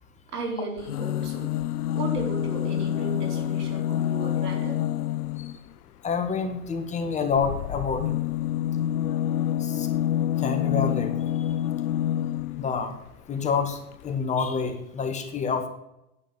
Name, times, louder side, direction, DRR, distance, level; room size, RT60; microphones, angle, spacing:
voice 1, 0.3-1.6 1.9-4.9, right 2 dB, 85° right, 3 dB, 4.2 m, -35 dB
sound 1, 0.8-5.6 7.3-12.8 13.7-13.8 14.0-14.1, left 11 dB, 80° left, 0.6 m, -27 dB
voice 2, 6.0-8.0 9.6-9.9 10.4-11.5 12.6-12.9 13.3-15.7, left 5 dB, 15° left, 6 dB, 1.6 m, -28 dB
10.0 x 7.8 x 8.0 m, 0.87 s
hypercardioid pair, 135°, 45 cm